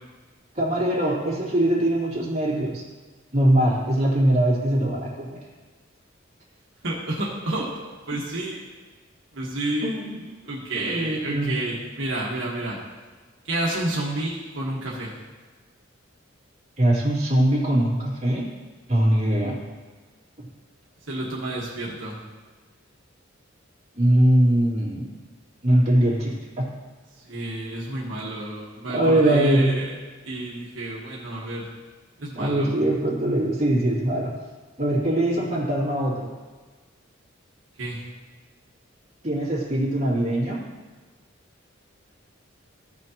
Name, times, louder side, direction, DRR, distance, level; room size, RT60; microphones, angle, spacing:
voice 1, 0.5-2.8 3.3-5.4 9.8-10.1 10.7-11.5 16.8-18.5 18.9-19.6 24.0-25.1 25.6-26.6 28.9-29.7 32.3-34.3 34.8-36.3 39.2-40.6, right 1 dB, 35° right, -6 dB, 2.5 m, -21 dB
voice 2, 6.8-7.7 8.1-8.6 9.3-10.0 10.5-12.8 13.5-15.1 21.1-22.2 27.3-29.9 30.2-31.7 32.2-32.7 37.8-38.0, right 1 dB, 70° right, -5 dB, 1.4 m, -30 dB
15.0 x 6.2 x 2.9 m, 1.4 s
head